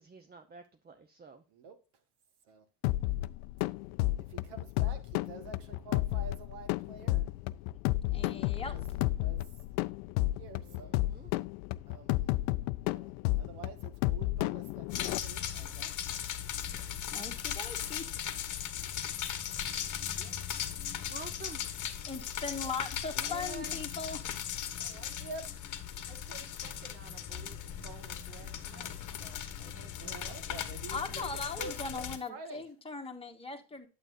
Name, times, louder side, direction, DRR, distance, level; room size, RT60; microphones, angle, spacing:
voice 1, 0.0-1.4 10.6-11.3 16.6-16.9 21.1-21.8 23.1-24.0, right 5 dB, 20° right, 0.8 m, -49 dB
sound 1, 2.8-15.2, left 18 dB, 65° left, 0.5 m, -32 dB
voice 2, 4.3-7.3 8.7-9.4 10.4-10.9 11.9-12.4 12.8-14.9 15.1-16.2 23.2-23.5 25.2-25.5 30.0-32.6, right 4 dB, 65° right, 1.7 m, -47 dB
voice 3, 8.1-8.8 17.1-18.1 22.1-24.2 30.9-33.9, left 4 dB, 10° left, 1.6 m, -39 dB
sound 2, 14.9-32.2, left 10 dB, 40° left, 1.2 m, -38 dB
voice 4, 24.8-25.2 26.1-31.2, right 7 dB, 80° right, 1.9 m, -55 dB
9.0 x 7.8 x 2.6 m
hypercardioid pair, 85°, 46 cm